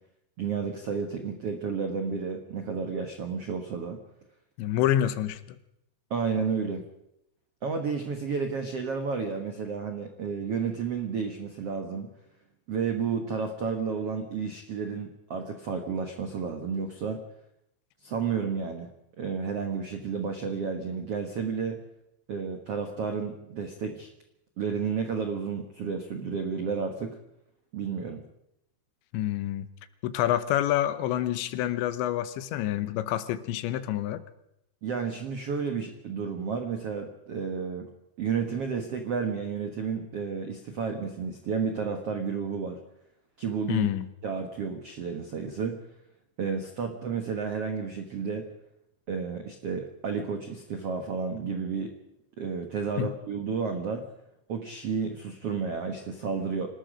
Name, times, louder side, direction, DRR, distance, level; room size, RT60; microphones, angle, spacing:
voice 1, 0.4-4.0 6.1-6.8 7.6-12.1 12.7-17.2 18.0-18.9 19.2-21.8 22.3-24.1 24.6-27.2 27.7-28.2 34.8-37.9 38.2-42.8 43.4-43.9 44.2-45.8 46.4-48.5 49.1-51.9 52.4-54.0 54.5-56.8, right 5 dB, 75° right, 5 dB, 1.3 m, -31 dB
voice 2, 4.6-5.6 29.1-29.7 30.0-34.2 43.7-44.1 53.0-53.1, left 12 dB, 85° left, 13 dB, 3.3 m, -27 dB
26.5 x 19.0 x 5.1 m, 0.81 s
omnidirectional pair, 5.1 m